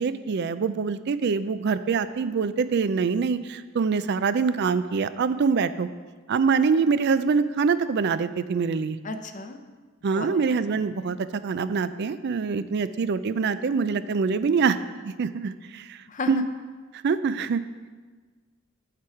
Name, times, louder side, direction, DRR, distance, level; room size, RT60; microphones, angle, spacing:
voice 1, 0.0-5.9 6.3-9.0 10.0-14.8 15.0-16.0 16.3-16.4 16.9-17.6, right 5 dB, 55° right, 14 dB, 0.4 m, -24 dB
voice 2, 9.0-9.6 10.1-10.3 10.7-11.1 16.1-16.3, left 3 dB, 40° left, 7 dB, 0.6 m, -35 dB
7.8 x 7.4 x 4.8 m, 1.4 s
head